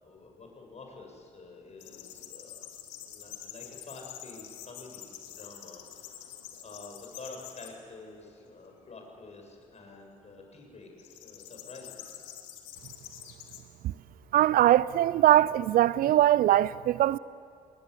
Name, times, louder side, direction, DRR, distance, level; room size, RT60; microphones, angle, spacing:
voice 1, 0.0-2.7 3.1-12.1, left 3 dB, 40° left, 7.8 m, -48 dB
sound 1, 1.8-7.7 8.3-8.8 11.0-13.6, left 11 dB, 75° left, 2.2 m, -46 dB
voice 2, 14.3-17.2, right 13 dB, 55° right, 0.5 m, -22 dB
29.0 x 20.5 x 8.4 m
figure-of-eight pair, 45°, 17 cm